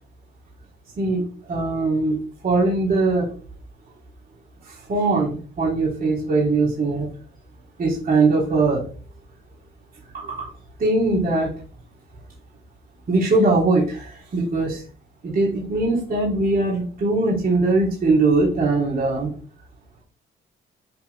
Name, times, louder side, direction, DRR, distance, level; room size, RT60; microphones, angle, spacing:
voice 1, 1.5-2.2 2.4-3.3 4.9-7.1 7.8-8.8 10.1-10.5 10.8-11.5 13.1-14.8 15.2-19.3, right 3 dB, 45° right, -4 dB, 3.4 m, -21 dB
8.0 x 5.1 x 3.5 m, 0.39 s
cardioid pair, 90°, 20 cm